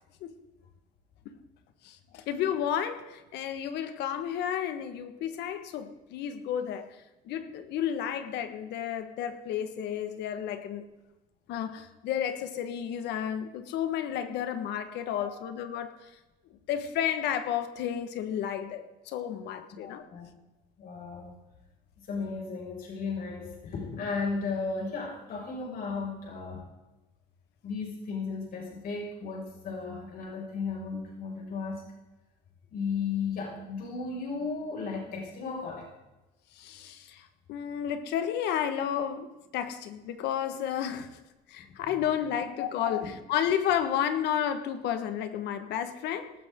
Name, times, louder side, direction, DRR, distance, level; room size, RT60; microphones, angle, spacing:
voice 1, 1.8-10.9 11.5-16.1 16.5-20.0 36.5-41.1 41.5-46.3, left 9 dB, 85° left, 9 dB, 1.6 m, -32 dB
voice 2, 15.1-15.5 19.8-20.3 20.8-21.3 22.0-26.6 27.6-31.8 32.7-35.9 41.8-42.0 42.4-43.1, left 4 dB, 60° left, -1 dB, 6.0 m, -35 dB
19.0 x 14.0 x 3.8 m, 1.1 s
cardioid pair, 110°, 17 cm